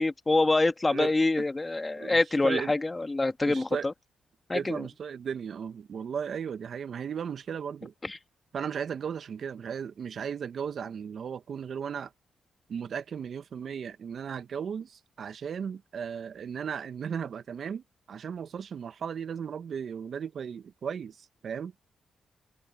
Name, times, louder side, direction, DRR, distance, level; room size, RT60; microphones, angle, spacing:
voice 1, 0.0-3.9 4.5-4.9 8.0-8.2, left 2 dB, 25° left, 1.7 m, -26 dB
voice 2, 2.0-2.7 3.5-3.9 4.5-7.9 8.5-12.1 12.7-21.7, right 7 dB, 65° right, 1.0 m, -36 dB
supercardioid pair, 55°, 0 cm